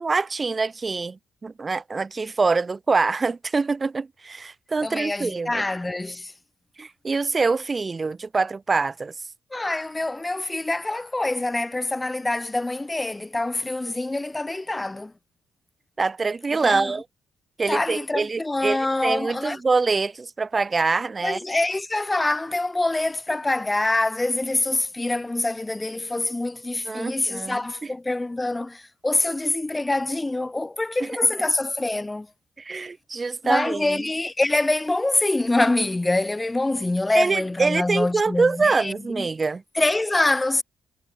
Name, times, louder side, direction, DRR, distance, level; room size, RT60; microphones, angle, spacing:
voice 1, 0.0-5.6 6.8-9.1 16.0-17.0 17.6-21.4 26.9-27.9 31.0-31.1 32.6-34.0 37.1-39.6, right 4 dB, 30° right, 0.9 m, -25 dB
voice 2, 4.8-6.3 9.5-15.1 16.6-17.0 17.7-19.6 21.2-32.3 33.4-39.3 39.7-40.6, left 2 dB, 15° left, 0.4 m, -25 dB
cardioid pair, 90°, 0 cm